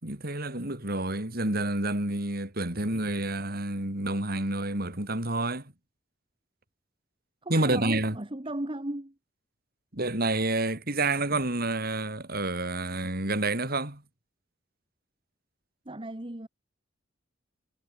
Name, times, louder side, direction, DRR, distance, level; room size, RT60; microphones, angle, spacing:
voice 1, 0.0-5.7 7.5-8.2 9.9-14.0, right 2 dB, 50° right, 4.5 m, -29 dB
voice 2, 7.4-9.1 15.8-16.5, right 1 dB, 25° right, 1.5 m, -36 dB
head